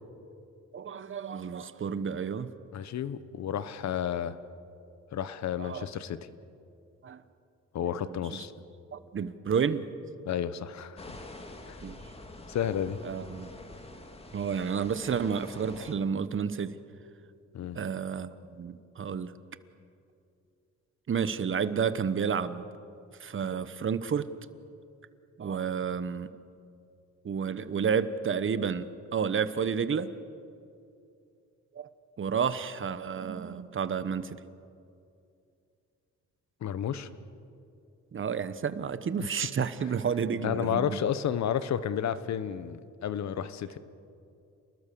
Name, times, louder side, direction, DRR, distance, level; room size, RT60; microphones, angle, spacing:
voice 1, 0.7-2.5 5.6-5.9 7.0-7.2 7.9-8.4 8.9-9.9 11.8-12.0 13.0-13.5 14.3-16.8 17.7-19.3 21.1-22.6 23.2-24.3 25.4-26.3 27.2-30.1 31.7-31.9 32.2-34.4 38.1-41.0, right 6 dB, 40° right, 13 dB, 1.1 m, -31 dB
voice 2, 2.7-4.4 5.1-6.2 7.7-8.5 10.3-11.2 11.7-11.8 12.5-13.0 17.5-17.8 36.6-37.1 39.2-39.3 40.4-43.8, left 9 dB, 65° left, 14 dB, 1.2 m, -31 dB
sound 1, 11.0-16.0, left 2 dB, 20° left, 2.7 m, -46 dB
28.5 x 20.0 x 7.0 m, 2.5 s
cardioid pair, 90°, 30 cm